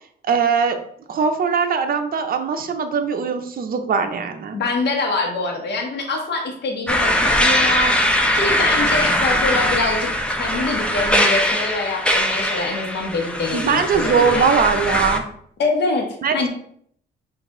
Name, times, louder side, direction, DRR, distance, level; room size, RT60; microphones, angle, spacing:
voice 1, 0.3-0.8 1.1-4.6 13.5-15.2 16.2-16.3, right 6 dB, 45° right, 6 dB, 0.7 m, -20 dB
voice 2, 4.5-7.9 8.3-10.1 10.4-14.5 15.6-16.1 16.3-16.5, left 3 dB, 60° left, 1 dB, 1.1 m, -24 dB
sound 1, 6.9-15.2, left 1 dB, 5° left, 0.7 m, -20 dB
5.1 x 2.6 x 3.7 m, 0.65 s
cardioid pair, 90°, 20 cm